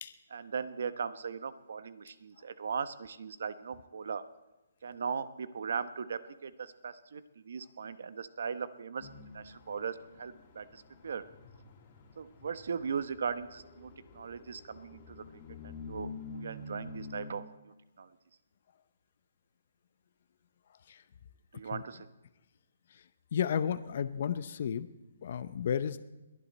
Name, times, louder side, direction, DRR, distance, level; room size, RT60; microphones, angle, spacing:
voice 1, 0.3-4.2 4.8-9.1 9.3-11.2 12.2-15.2 15.6-18.1 21.5-22.1, right 6 dB, 60° right, 13 dB, 0.9 m, -38 dB
sound 1, 9.0-17.3, left 3 dB, 30° left, 2.7 m, -48 dB
voice 2, 23.3-24.9 25.2-26.0, left 8 dB, 45° left, 12 dB, 0.6 m, -32 dB
21.5 x 11.0 x 4.2 m, 1.0 s
hypercardioid pair, 170°, 0 cm